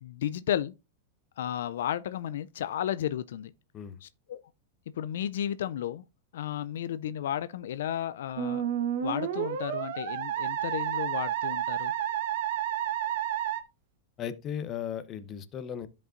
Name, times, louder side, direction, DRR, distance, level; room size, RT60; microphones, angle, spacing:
voice 1, 0.0-0.7 1.4-3.5 4.0-4.4 4.9-6.0 6.3-8.7 9.0-12.1, left 10 dB, 80° left, 0.3 m, -33 dB
Musical instrument, 8.4-13.6, right 10 dB, 70° right, 1.1 m, -30 dB
voice 2, 14.2-15.9, left 8 dB, 30° left, 0.8 m, -36 dB
12.5 x 5.3 x 2.5 m
supercardioid pair, 140°, 0 cm